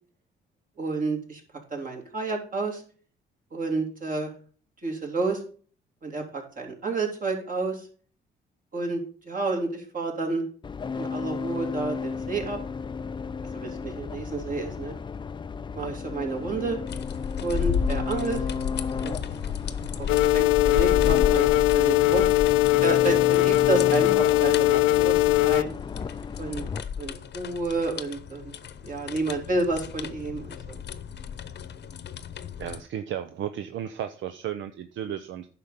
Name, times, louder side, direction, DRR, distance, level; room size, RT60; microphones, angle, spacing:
voice 1, 0.8-1.4 1.7-2.8 3.5-4.3 4.8-5.4 6.0-7.9 8.7-10.4 10.9-12.6 13.5-14.9 15.7-16.8 17.4-18.4 19.0-19.2 20.0-22.3 22.8-25.7 26.4-26.7 27.0-28.4 28.8-30.8, right 3 dB, 45° right, 1 dB, 3.2 m, -30 dB
sound 1, 10.6-26.8, left 5 dB, 25° left, 0.4 m, -34 dB
sound 2, 16.9-32.8, left 7 dB, 60° left, 0.9 m, -33 dB
sound 3, 20.1-25.6, left 17 dB, 85° left, 0.5 m, -20 dB
voice 2, 32.6-35.5, right 10 dB, 75° right, 9 dB, 0.7 m, -34 dB
9.7 x 5.9 x 5.1 m, 0.43 s
cardioid pair, 90°, 20 cm